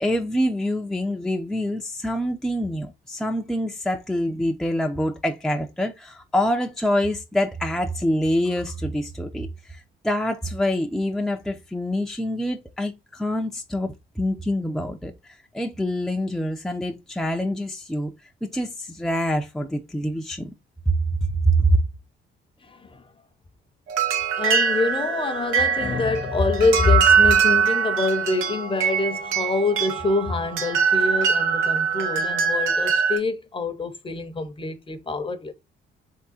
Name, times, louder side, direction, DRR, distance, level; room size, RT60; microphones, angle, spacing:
voice 1, 0.0-9.8 10.0-18.1 18.5-20.5 20.9-21.0 21.4-21.8, equal, ahead, 0.6 m, -25 dB
voice 2, 22.6-23.0 24.4-35.5, left 3 dB, 25° left, 0.8 m, -25 dB
sound 1, 23.9-33.2, right 6 dB, 85° right, 1.1 m, -22 dB
3.7 x 3.4 x 4.2 m
cardioid pair, 90°, 20 cm